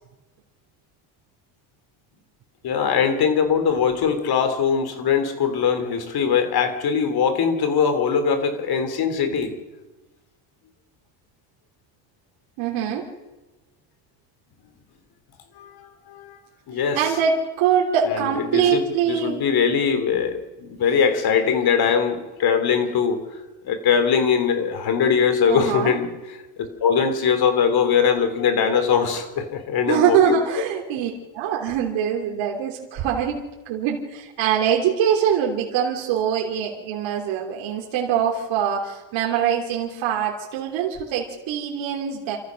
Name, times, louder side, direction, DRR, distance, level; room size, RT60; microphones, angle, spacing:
voice 1, 2.6-9.5 15.6-16.4 16.7-17.1 18.1-23.2 23.6-26.1 26.6-30.3, left 6 dB, 50° left, 9 dB, 3.5 m, -21 dB
voice 2, 12.6-13.1 16.9-19.4 25.5-25.9 29.9-33.4 33.6-42.4, right 8 dB, 75° right, -1 dB, 3.2 m, -23 dB
28.5 x 14.5 x 6.4 m, 1.1 s
supercardioid pair, 95°, 47 cm